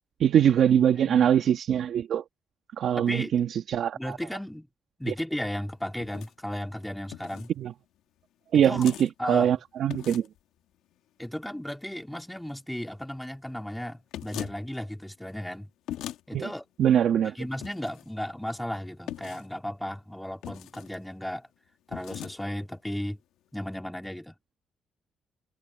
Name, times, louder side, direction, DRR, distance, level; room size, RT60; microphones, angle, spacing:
voice 1, 0.2-2.2 2.8-4.0 5.1-5.2 7.6-7.7 8.5-10.3 16.3-16.5 16.8-17.3, right 9 dB, 70° right, 1.8 m, -22 dB
voice 2, 0.8-1.3 3.0-3.3 3.9-4.7 5.0-7.5 8.5-8.9 9.2-9.6 11.2-15.7 16.3-16.7 17.2-21.5 21.9-23.2 23.5-24.3, left 1 dB, 5° left, 2.9 m, -35 dB
sound 1, 6.0-6.3 7.1-7.5 8.7-9.1 9.9-10.4 14.1-14.6 15.9-16.2 17.6-18.0 19.1-19.5 20.4-21.0 21.9-22.3, left 12 dB, 90° left, 2.1 m, -39 dB
cardioid pair, 90°, 0 cm